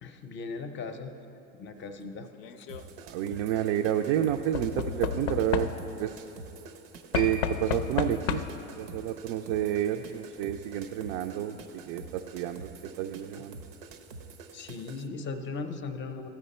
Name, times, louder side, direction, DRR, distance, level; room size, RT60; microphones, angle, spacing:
voice 1, 0.0-1.1 1.6-2.3 2.6-2.7 14.5-16.3, left 4 dB, 30° left, 7 dB, 0.6 m, -38 dB
Knock / Wood, 2.3-2.8 4.5-6.1 7.1-8.7 9.8-9.9 10.1-10.2, left 8 dB, 85° left, 0.5 m, -32 dB
sound 1, 2.7-15.1, right 4 dB, 85° right, 0.8 m, -47 dB
voice 2, 3.0-5.7 6.0-6.3 7.1-8.5 8.8-13.5, right 11 dB, 60° right, 5 dB, 0.5 m, -30 dB
Piano, 7.1-14.1 14.3-14.4, right 1 dB, 10° right, 0.5 m, -46 dB
13.5 x 5.0 x 4.2 m, 3.0 s
supercardioid pair, 110°, 38 cm